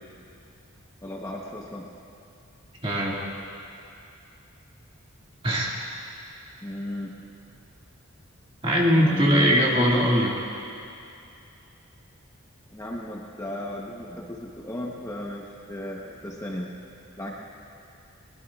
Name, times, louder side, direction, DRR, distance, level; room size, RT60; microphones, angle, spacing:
voice 1, 1.0-1.9 6.6-7.1 8.9-10.1 12.7-16.7 17.2-17.3, left 1 dB, 15° left, -3 dB, 1.0 m, -35 dB
voice 2, 2.8-3.2 5.4-5.8 8.6-10.3, equal, 25° right, -3 dB, 2.0 m, -21 dB
22.0 x 20.0 x 2.4 m, 2.6 s
head